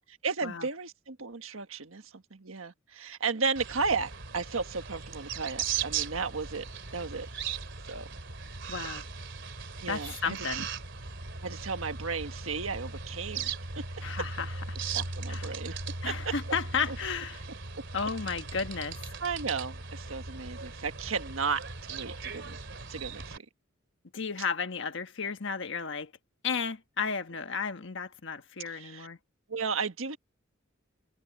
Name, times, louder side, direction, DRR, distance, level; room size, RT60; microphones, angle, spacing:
voice 1, 0.1-7.3 7.9-8.1 9.8-10.7 11.4-13.5 13.8-14.0 14.9-15.8 16.0-16.6 16.9-17.0 19.2-21.6 21.9-22.6 22.9-23.5 28.6-29.1 29.5-30.2, right 5 dB, 80° right, 1.5 m, -34 dB
sound 1, 3.6-23.4, right 5 dB, 60° right, 3.3 m, -38 dB
voice 2, 8.7-9.1 9.9-10.6 14.0-14.8 15.3-15.5 16.0-17.4 17.9-19.0 24.1-26.1 26.4-29.2, left 5 dB, 65° left, 1.4 m, -33 dB
head